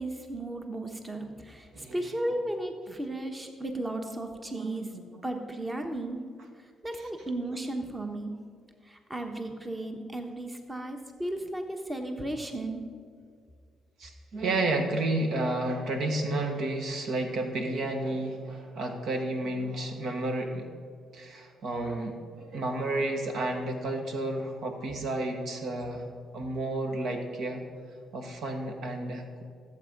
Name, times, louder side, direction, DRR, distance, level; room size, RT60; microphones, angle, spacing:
voice 1, 0.0-4.9 5.2-6.2 6.8-8.3 8.8-12.8, right 1 dB, 20° right, 4 dB, 1.2 m, -35 dB
voice 2, 4.6-4.9 14.0-20.7 21.1-26.0 26.3-27.6 28.1-29.4, right 2 dB, 70° right, 4 dB, 1.5 m, -31 dB
14.5 x 8.0 x 5.3 m, 2.1 s
cardioid pair, 90°, 0 cm